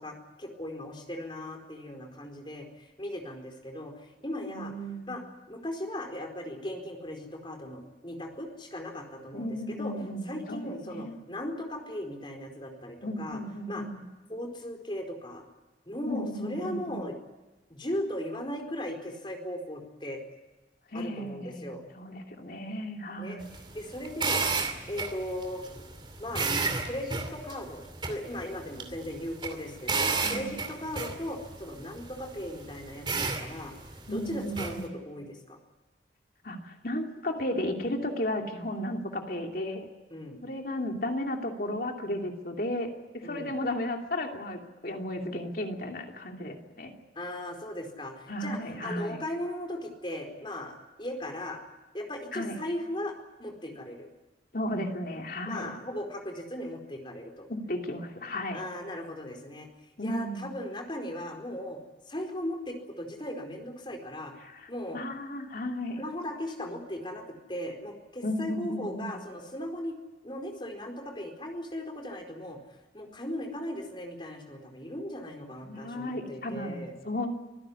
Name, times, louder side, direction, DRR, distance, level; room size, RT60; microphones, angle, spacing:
voice 1, 0.0-4.7 5.1-5.2 5.5-9.9 10.3-13.4 13.7-13.8 14.3-15.4 15.9-17.1 17.7-20.2 20.9-21.8 23.2-23.4 23.7-25.6 26.2-26.5 26.9-33.7 34.1-35.6 40.1-40.4 43.2-43.5 47.1-51.6 51.9-54.1 55.5-57.5 58.5-59.7 60.0-61.8 62.1-64.3 64.7-65.0 66.0-70.0 70.2-72.6 72.9-76.9, left 1 dB, 25° left, 3 dB, 4.3 m, -38 dB
voice 2, 4.5-5.2 9.3-11.2 13.0-14.0 16.1-17.0 20.9-23.5 30.2-30.5 34.1-34.9 36.4-39.9 40.4-46.9 48.3-49.2 52.3-52.6 54.5-55.7 57.5-58.6 60.0-60.5 64.4-66.0 68.2-69.1 75.6-77.3, left 1 dB, 55° left, 2 dB, 2.8 m, -34 dB
sound 1, 23.4-34.8, right 4 dB, 25° right, 2.6 m, -33 dB
24.5 x 16.0 x 9.9 m, 1.1 s
head